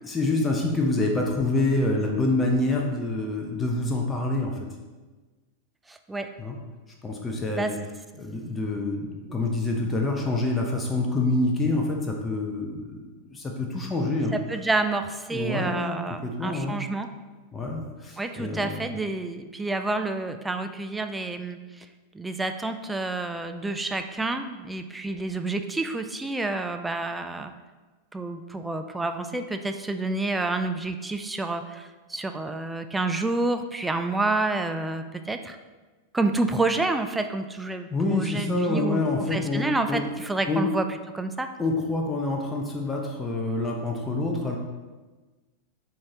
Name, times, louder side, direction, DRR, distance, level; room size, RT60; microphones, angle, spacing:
voice 1, 0.0-4.6 6.4-6.6 7.0-7.8 8.2-13.0 13.3-14.4 15.3-16.0 16.2-16.8 17.5-18.8 37.9-40.0 40.5-40.7 41.6-44.6, left 2 dB, 15° left, 0 dB, 0.7 m, -26 dB
voice 2, 5.9-6.3 7.6-7.7 14.3-17.1 18.2-21.9 22.1-27.5 28.1-35.6 36.1-40.9 41.1-41.5, right 2 dB, 10° right, 7 dB, 0.4 m, -29 dB
7.2 x 4.7 x 2.9 m, 1.3 s
figure-of-eight pair, 90°, 0 cm